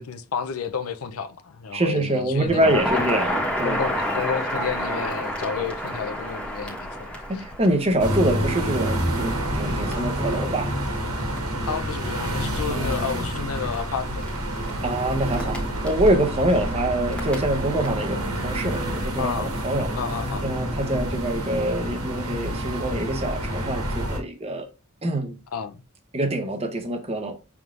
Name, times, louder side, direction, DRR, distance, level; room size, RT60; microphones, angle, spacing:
voice 1, 0.0-3.1 3.6-7.5 11.7-14.3 19.2-19.6 20.0-20.5 25.5-25.8, left 6 dB, 75° left, 0.5 m, -31 dB
voice 2, 1.7-3.8 7.1-10.7 12.7-13.2 14.8-19.9 20.4-24.7 25.0-25.4 26.1-27.3, right 1 dB, 25° right, 0.8 m, -25 dB
Crackle, 2.5-17.9, equal, 5° left, 1.1 m, -32 dB
sound 1, 8.0-24.2, right 1 dB, 80° right, 1.4 m, -28 dB
6.0 x 3.6 x 2.4 m
head